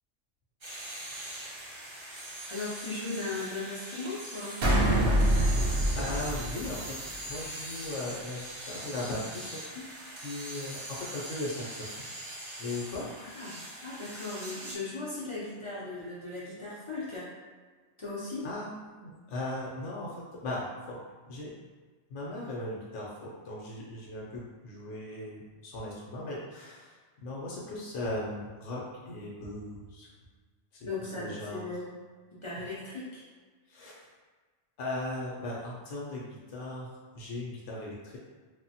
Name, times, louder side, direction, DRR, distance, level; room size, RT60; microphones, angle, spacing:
sound 1, 0.6-14.8, right 1 dB, 45° right, 0.4 m, -42 dB
voice 1, 2.5-4.6 13.2-17.3 18.0-18.4 30.9-31.9 32.4-33.3, left 3 dB, 40° left, -8 dB, 0.4 m, -37 dB
sound 2, 4.6-7.2, right 1 dB, 65° right, 0.8 m, -25 dB
voice 2, 5.3-7.0 7.3-9.9 10.1-12.1 12.6-13.1 18.4-21.0 21.3-21.5 22.1-30.1 30.7-31.7 33.7-34.1 34.8-38.2, left 2 dB, 80° left, -4 dB, 0.9 m, -38 dB
3.1 x 2.1 x 2.7 m, 1.4 s
omnidirectional pair, 1.3 m